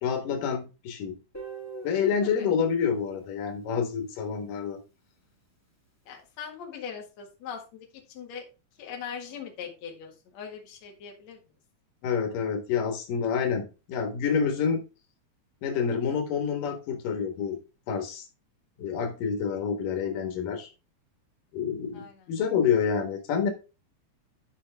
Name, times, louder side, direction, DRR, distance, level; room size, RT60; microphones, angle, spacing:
voice 1, 0.0-1.1 1.8-4.8 12.0-14.8 15.6-17.6 17.9-18.2 18.8-20.7 21.5-23.5, left 6 dB, 90° left, 4 dB, 3.1 m, -28 dB
Guitar, 1.3-4.3, right 4 dB, 5° left, 3.2 m, -44 dB
voice 2, 6.1-8.4 8.8-11.4 21.9-22.3, left 7 dB, 60° left, 2 dB, 2.9 m, -41 dB
11.5 x 5.5 x 3.4 m, 0.30 s
omnidirectional pair, 3.7 m